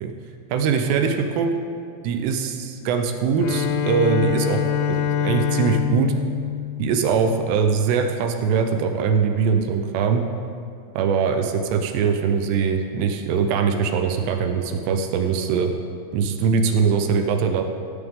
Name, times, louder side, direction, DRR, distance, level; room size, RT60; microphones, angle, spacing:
voice 1, 0.5-1.5 2.0-4.6 4.9-6.1 6.8-10.2 11.0-15.7 16.1-17.6, right 6 dB, 80° right, 5 dB, 2.6 m, -22 dB
Bowed string instrument, 3.3-7.7, left 8 dB, 90° left, 3.2 m, -25 dB
16.0 x 9.8 x 3.7 m, 2.3 s
omnidirectional pair, 5.5 m